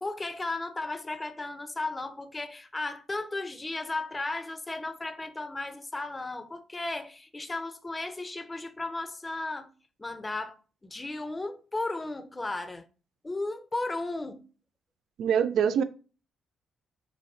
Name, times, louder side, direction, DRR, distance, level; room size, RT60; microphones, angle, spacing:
voice 1, 0.0-9.7 10.0-12.9 13.2-14.4, left 2 dB, 20° left, 0.6 m, -35 dB
voice 2, 15.2-15.8, right 8 dB, 70° right, 0.3 m, -24 dB
5.2 x 2.1 x 3.8 m
cardioid pair, 90°, 0 cm